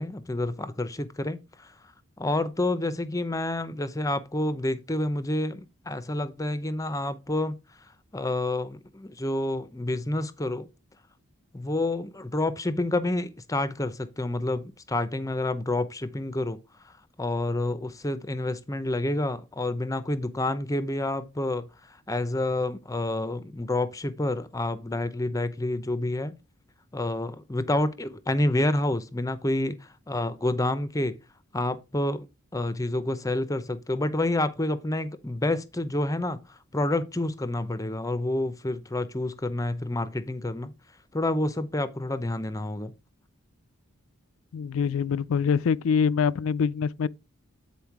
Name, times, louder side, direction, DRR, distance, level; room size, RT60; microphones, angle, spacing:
voice 1, 0.0-1.7 2.2-7.6 8.1-10.7 11.5-16.6 16.8-16.9 17.2-26.3 26.9-31.2 31.5-32.3 32.5-40.7 41.1-42.9, left 1 dB, 15° left, 0.6 m, -28 dB
voice 2, 44.5-47.1, left 6 dB, 75° left, 0.4 m, -24 dB
8.8 x 4.4 x 4.6 m
head